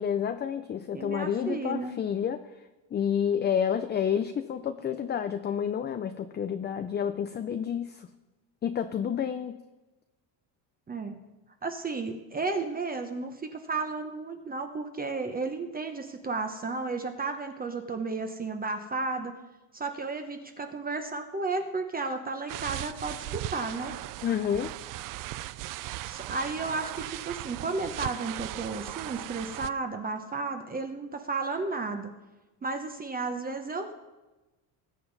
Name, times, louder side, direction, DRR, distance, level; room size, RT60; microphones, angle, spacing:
voice 1, 0.0-2.6 2.9-8.1 8.6-9.6 24.2-24.7, left 8 dB, 25° left, 9 dB, 0.5 m, -29 dB
voice 2, 0.9-1.9 10.9-11.2 11.6-19.3 19.7-24.0 26.0-32.1 32.6-33.9, right 3 dB, 20° right, 6 dB, 0.9 m, -33 dB
sound 1, 22.5-29.7, right 16 dB, 50° right, 0.4 m, -38 dB
20.0 x 7.6 x 4.0 m, 1.1 s
cardioid pair, 120°, 44 cm